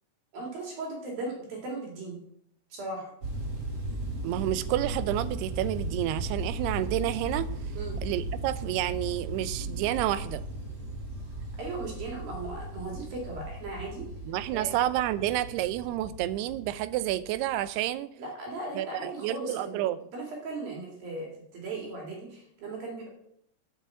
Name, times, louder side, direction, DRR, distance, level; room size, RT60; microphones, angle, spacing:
voice 1, 0.3-2.2 2.7-3.1 7.7-8.0 11.6-14.1 14.5-14.7 18.2-19.8 20.1-23.1, right 2 dB, 65° right, -1 dB, 4.2 m, -37 dB
sound 1, 3.2-17.8, right 2 dB, 35° right, 2.0 m, -36 dB
voice 2, 4.2-7.5 8.0-10.4 14.3-18.1 18.7-20.0, right 13 dB, 85° right, 14 dB, 2.7 m, -29 dB
11.0 x 7.0 x 7.3 m, 0.72 s
omnidirectional pair, 4.7 m